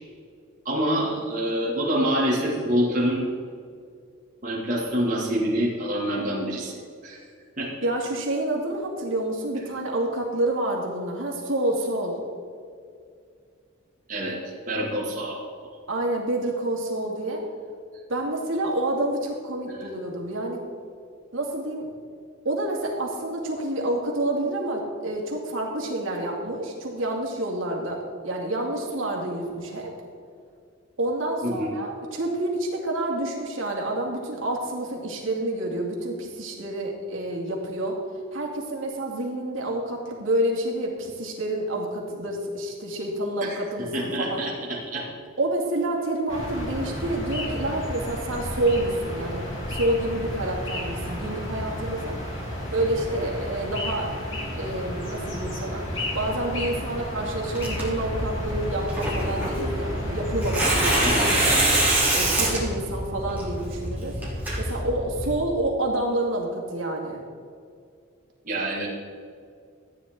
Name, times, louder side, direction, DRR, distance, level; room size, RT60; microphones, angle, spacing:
voice 1, 0.6-3.3 4.4-7.2 7.6-7.7 14.1-15.4 19.7-19.9 31.4-31.7 43.4-45.1 61.0-61.4 68.4-68.9, equal, 40° right, -5 dB, 2.2 m, -27 dB
voice 2, 7.8-12.2 15.9-17.4 18.1-20.6 21.3-21.9 22.4-29.9 31.0-38.0 38.3-44.4 45.4-52.1 52.7-54.1 54.6-55.8 56.1-61.5 62.1-64.1 64.6-67.2, right 1 dB, 75° right, -1 dB, 2.4 m, -28 dB
sound 1, 46.3-61.7, equal, 70° left, 3.2 m, -32 dB
Tearing, 57.5-65.3, right 1 dB, 10° right, 3.1 m, -25 dB
14.5 x 9.4 x 3.8 m, 2.2 s
head